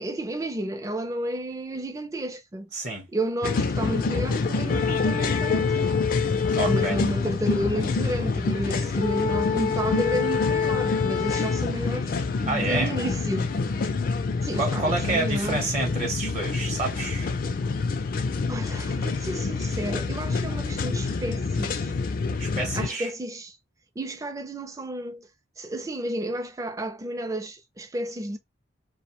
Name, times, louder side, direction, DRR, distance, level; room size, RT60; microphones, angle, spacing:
voice 1, 0.0-2.7 3.1-6.2 6.7-13.5 14.4-15.6 18.5-21.9 22.7-23.6 24.0-25.3 25.6-28.4, right 1 dB, 15° right, 0.4 m, -31 dB
voice 2, 2.7-3.1 6.5-7.0 12.4-13.0 14.6-17.3 22.4-23.1, right 2 dB, 40° right, 0.8 m, -28 dB
sound 1, 3.4-22.9, left 4 dB, 50° left, 0.4 m, -26 dB
2.5 x 2.1 x 2.8 m
head